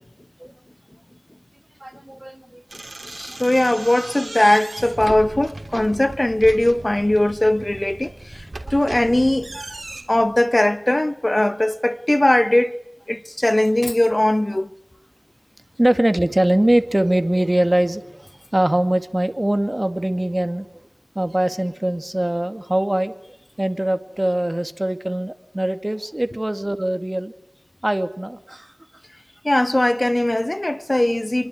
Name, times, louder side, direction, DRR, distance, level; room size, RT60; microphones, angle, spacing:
voice 1, 1.8-2.9 8.6-8.8 9.5-9.8 15.8-20.8 21.1-23.2 23.6-27.3 27.8-28.7, right 1 dB, 30° right, 2.3 m, -22 dB
sound 1, 2.7-7.3 7.8-10.0, right 2 dB, 80° right, 3.4 m, -36 dB
voice 2, 3.0-9.5 10.1-12.8 13.1-14.7 29.4-31.5, left 1 dB, 35° left, 1.1 m, -19 dB
sound 2, 4.8-10.7, right 2 dB, 65° right, 3.0 m, -42 dB
26.0 x 23.5 x 9.6 m
wide cardioid pair, 50°, 0 cm